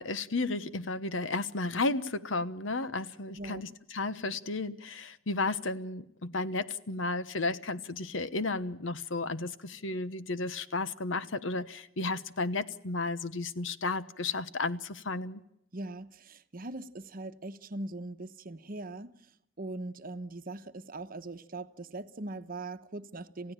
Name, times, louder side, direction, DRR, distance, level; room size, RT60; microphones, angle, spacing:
voice 1, 0.0-15.4, left 3 dB, 75° left, 1.1 m, -33 dB
voice 2, 15.7-19.1 19.6-23.5, right 2 dB, 50° right, 1.0 m, -41 dB
28.5 x 16.0 x 8.9 m
head